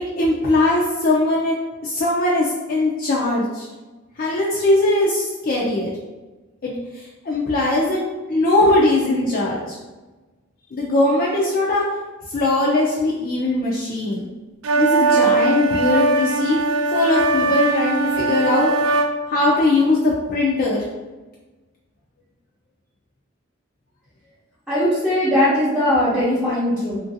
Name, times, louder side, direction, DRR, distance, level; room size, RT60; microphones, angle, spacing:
voice 1, 0.2-1.6 1.8-3.7 4.2-5.9 6.6-8.0 8.3-9.8 10.7-11.8 12.3-14.3 14.8-16.6 16.9-18.7 19.3-20.9, left 2 dB, 45° left, -5 dB, 0.4 m, -20 dB
sound 1, 14.6-19.1, right 3 dB, 80° right, 0.3 m, -20 dB
voice 2, 24.7-27.0, left 1 dB, 5° right, -11 dB, 0.7 m, -19 dB
2.8 x 2.5 x 2.7 m, 1.2 s
head